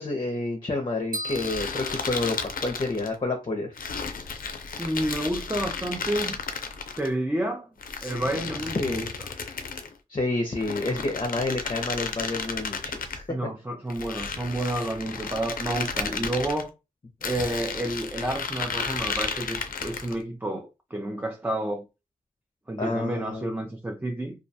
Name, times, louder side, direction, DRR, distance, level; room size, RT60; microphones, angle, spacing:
voice 1, 0.0-3.7 8.7-9.0 10.1-13.2 22.8-23.5, left 2 dB, 40° left, 0.6 m, -29 dB
sound 1, 1.1-3.0, right 1 dB, 75° right, 0.7 m, -38 dB
sound 2, 1.2-3.1 3.8-7.1 7.8-9.9 10.5-13.2 13.9-16.6 17.2-20.2, left 5 dB, 85° left, 0.4 m, -33 dB
voice 2, 4.8-6.4 7.0-7.7 8.0-9.1 10.9-11.0 13.3-16.7 17.2-21.9 22.7-24.4, right 1 dB, 15° right, 0.4 m, -30 dB
2.3 x 2.1 x 2.7 m
wide cardioid pair, 60°, 14 cm